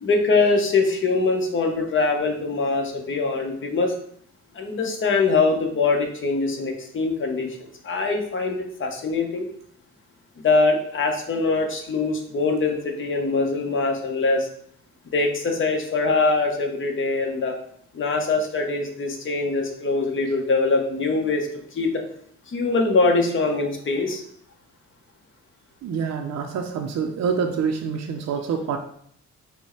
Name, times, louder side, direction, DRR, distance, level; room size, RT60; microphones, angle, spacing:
voice 1, 0.0-3.9 4.5-9.5 10.4-14.5 15.1-17.6 17.9-22.0 22.5-24.2, left 3 dB, 40° left, 2 dB, 0.9 m, -23 dB
voice 2, 25.8-28.8, right 6 dB, 60° right, 3 dB, 0.5 m, -26 dB
4.3 x 2.2 x 4.4 m, 0.64 s
cardioid pair, 90°, 30 cm